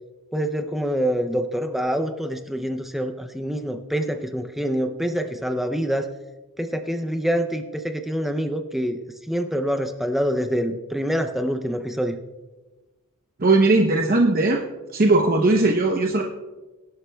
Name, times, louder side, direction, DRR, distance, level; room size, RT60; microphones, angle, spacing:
voice 1, 0.3-6.1 6.6-9.0 9.3-12.2, equal, ahead, 6 dB, 0.5 m, -26 dB
voice 2, 13.4-14.6 14.9-16.2, right 2 dB, 40° right, 1 dB, 0.8 m, -18 dB
23.5 x 11.5 x 2.3 m, 1.2 s
head